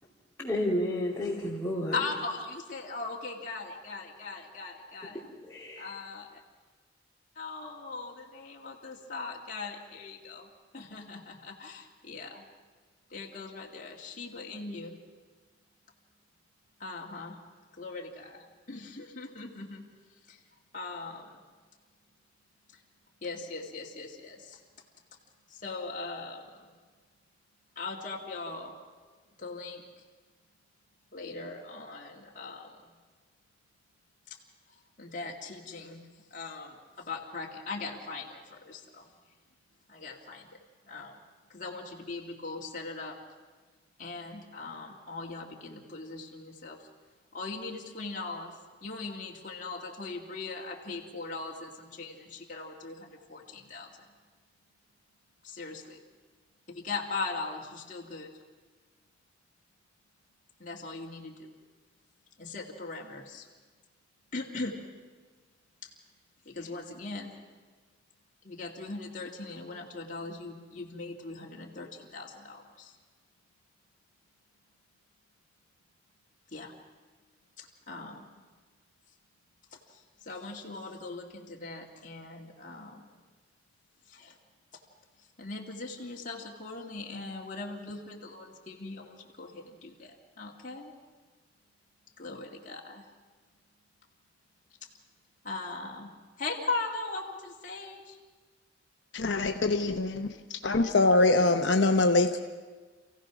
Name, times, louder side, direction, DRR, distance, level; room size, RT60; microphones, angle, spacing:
voice 1, 0.4-2.0 5.1-5.9, left 1 dB, 15° left, -9 dB, 3.2 m, -31 dB
voice 2, 1.9-5.2 5.8-6.3 7.4-10.5 10.7-12.4 13.1-15.0 16.8-17.4 17.7-19.8 20.3-20.4 20.7-21.3 22.7-22.8 23.2-24.6 25.5-26.7 27.8-28.7 29.4-29.8 31.1-32.9 34.3-34.4 35.0-39.1 39.9-40.6 40.9-41.1 41.5-43.2 44.0-46.8 47.3-54.1 55.4-56.0 56.7-58.4 60.6-61.6 62.4-63.5 64.3-64.8 65.8-65.9 66.4-67.4 68.4-72.9 76.5-76.7 77.6-78.3 79.7-83.2 84.1-84.4 85.4-90.9 92.2-93.1 95.4-96.1 96.4-98.2, left 3 dB, 40° left, -2 dB, 2.1 m, -40 dB
voice 3, 99.1-100.3 100.6-102.4, left 2 dB, 65° left, 6 dB, 0.9 m, -24 dB
27.5 x 16.0 x 6.1 m, 1.4 s
head